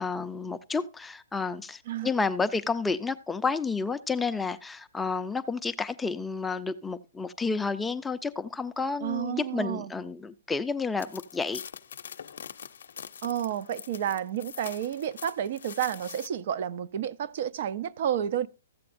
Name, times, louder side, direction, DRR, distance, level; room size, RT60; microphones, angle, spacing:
voice 1, 0.0-11.6, left 4 dB, 5° left, 0.4 m, -30 dB
voice 2, 9.0-9.9 13.2-18.5, right 10 dB, 50° right, 0.5 m, -31 dB
sound 1, 11.0-16.3, left 7 dB, 75° left, 0.6 m, -44 dB
14.5 x 7.7 x 2.5 m
hypercardioid pair, 150°, 0 cm